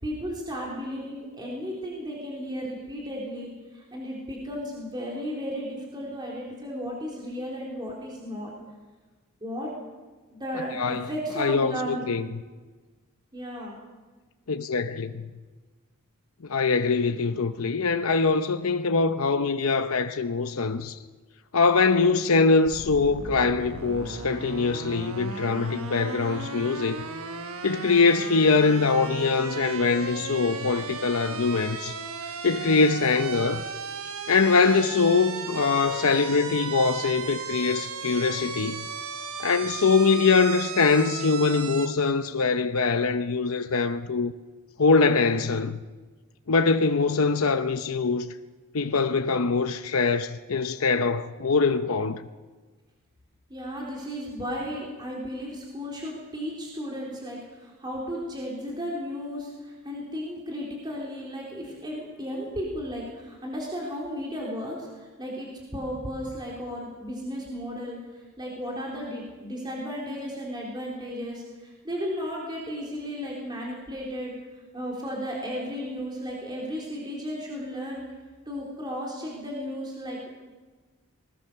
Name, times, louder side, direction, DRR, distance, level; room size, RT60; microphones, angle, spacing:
voice 1, 0.0-8.5 9.4-9.7 10.3-12.0 13.3-13.8 53.5-74.3 74.7-78.0 78.5-80.3, equal, 20° right, 3.8 m, -34 dB
voice 2, 10.8-11.1 11.4-12.3 14.5-15.3 16.5-21.0 21.5-27.0 27.6-32.0 32.4-33.7 34.3-38.9 39.4-44.3 44.8-45.8 46.5-48.3 48.7-52.2, left 4 dB, 70° left, 0.7 m, -23 dB
sound 1, 22.6-41.9, right 5 dB, 70° right, 1.3 m, -36 dB
20.5 x 19.5 x 6.8 m
head